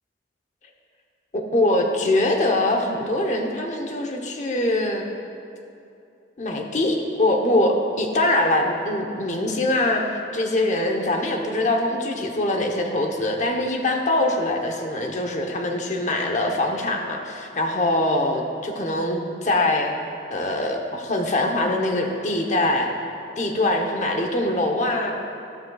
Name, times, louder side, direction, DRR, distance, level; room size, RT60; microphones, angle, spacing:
voice 1, 1.3-5.0 6.4-19.9 20.3-22.9 23.4-25.1, left 1 dB, 45° left, 3 dB, 0.9 m, -23 dB
13.5 x 12.5 x 2.3 m, 2.6 s
head